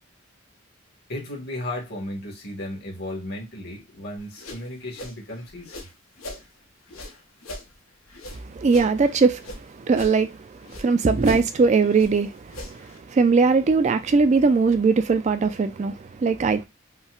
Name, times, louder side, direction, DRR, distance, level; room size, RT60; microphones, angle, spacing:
voice 1, 1.1-5.7, left 1 dB, 50° left, 1.5 m, -34 dB
sound 1, 4.2-6.5 6.9-9.6 9.9-10.9 11.2-13.0, left 1 dB, 90° left, 1.1 m, -40 dB
voice 2, 8.4-10.4 10.7-16.7, right 4 dB, 35° right, 0.3 m, -20 dB
5.4 x 2.2 x 2.3 m
head